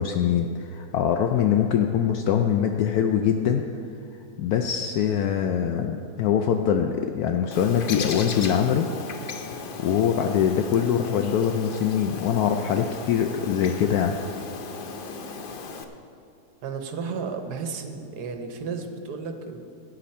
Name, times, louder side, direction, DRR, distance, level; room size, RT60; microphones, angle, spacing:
voice 1, 0.0-3.7 4.4-8.9 9.8-14.2, left 8 dB, 75° left, 5 dB, 1.0 m, -23 dB
Bird, 7.5-15.8, left 4 dB, 55° left, 0.6 m, -36 dB
voice 2, 16.6-19.6, right 5 dB, 75° right, 6 dB, 1.4 m, -33 dB
15.0 x 9.2 x 4.3 m, 2.4 s
omnidirectional pair, 1.8 m